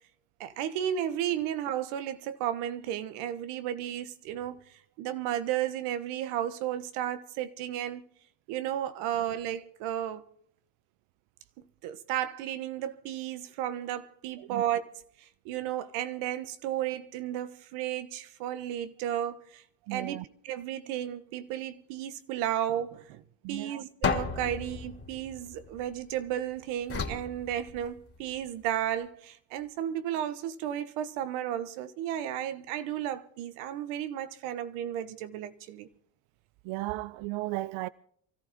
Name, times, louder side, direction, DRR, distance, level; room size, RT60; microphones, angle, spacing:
voice 1, 0.4-4.6 5.0-8.0 8.5-10.2 11.6-14.8 15.2-19.6 19.9-20.2 20.4-23.2 23.5-35.9, right 11 dB, 90° right, 1.5 m, -33 dB
voice 2, 19.8-20.2 23.4-23.8 36.6-37.9, right 19 dB, 70° right, 0.6 m, -35 dB
sound 1, 24.0-26.2 26.9-28.3, left 5 dB, 25° left, 2.7 m, -34 dB
24.0 x 14.5 x 3.7 m
cardioid pair, 120°, 49 cm